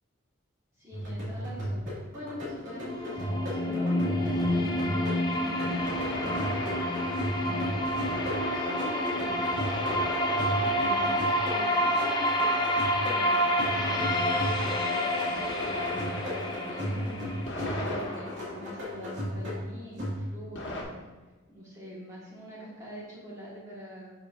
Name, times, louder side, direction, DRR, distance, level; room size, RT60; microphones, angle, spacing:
voice 1, 0.8-6.8 7.4-7.9 8.5-9.5 10.6-12.6 13.0-13.5 13.7-21.0 21.5-24.2, equal, 15° right, -7 dB, 1.8 m, -43 dB
sound 1, 0.9-20.6, equal, 65° right, 2.3 m, -36 dB
sound 2, 1.8-1.9 5.7-12.2 15.4-19.6 20.5-20.8, left 1 dB, 55° left, 1.4 m, -40 dB
sound 3, 2.6-18.5, equal, 20° left, 0.7 m, -29 dB
8.1 x 6.3 x 2.6 m, 1.2 s
head